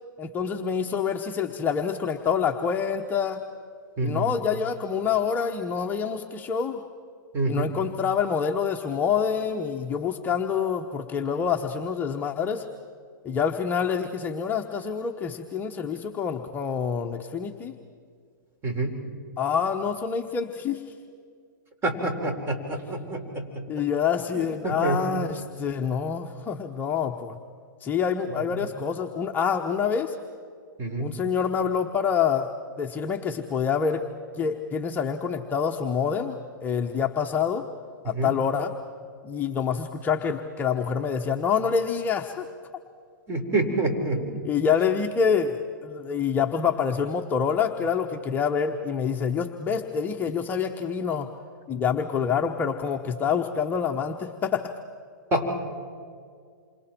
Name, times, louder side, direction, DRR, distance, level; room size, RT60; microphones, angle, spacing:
voice 1, 0.2-3.4 4.0-6.8 7.4-12.6 13.2-17.7 19.4-20.8 23.7-27.4 27.8-30.2 31.0-32.5 32.8-34.1 34.4-37.7 38.0-38.8 39.2-42.5 44.2-51.3 51.7-54.7, left 7 dB, 15° left, 3 dB, 1.0 m, -26 dB
voice 2, 4.0-4.3 7.3-7.7 18.6-19.0 21.8-23.6 24.3-25.0 28.3-28.7 30.8-31.1 38.1-38.3 43.3-44.2 55.3-55.5, right 2 dB, 20° right, 4 dB, 4.2 m, -27 dB
28.5 x 26.0 x 4.5 m, 2.1 s
hypercardioid pair, 130°, 11 cm